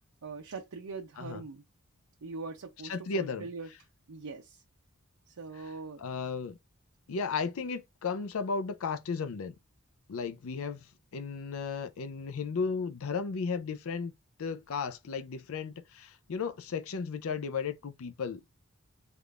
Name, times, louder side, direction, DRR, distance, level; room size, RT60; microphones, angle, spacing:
voice 1, 0.2-1.6 2.2-3.7 4.1-4.6 5.4-6.0, right 4 dB, 85° right, 0.6 m, -42 dB
voice 2, 2.8-3.5 6.0-6.6 7.1-9.5 10.1-10.9 11.1-14.1 14.4-18.5, left 5 dB, 70° left, 0.5 m, -34 dB
3.5 x 2.5 x 3.2 m
head